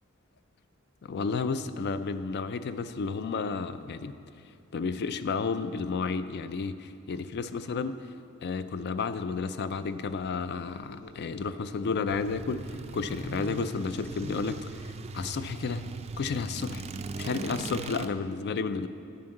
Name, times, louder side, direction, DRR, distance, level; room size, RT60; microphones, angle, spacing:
voice 1, 1.0-4.2 4.7-8.0 8.4-12.6 12.9-15.9 16.2-16.8 17.2-18.9, left 4 dB, 50° left, 12 dB, 0.4 m, -32 dB
sound 1, 9.6-14.7, left 2 dB, 75° left, 0.9 m, -53 dB
sound 2, 12.1-18.1, right 3 dB, 30° right, 0.4 m, -39 dB
9.4 x 5.3 x 7.7 m, 2.4 s
head